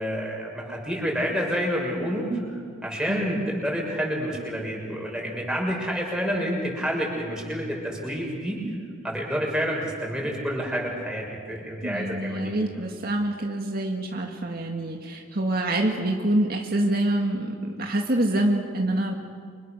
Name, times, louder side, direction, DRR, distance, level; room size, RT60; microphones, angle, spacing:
voice 1, 0.0-2.3 2.8-8.6 9.0-12.5, equal, 5° right, -2 dB, 6.3 m, -28 dB
voice 2, 11.6-19.1, right 1 dB, 50° right, 1 dB, 2.0 m, -26 dB
29.5 x 26.5 x 6.7 m, 2.1 s
head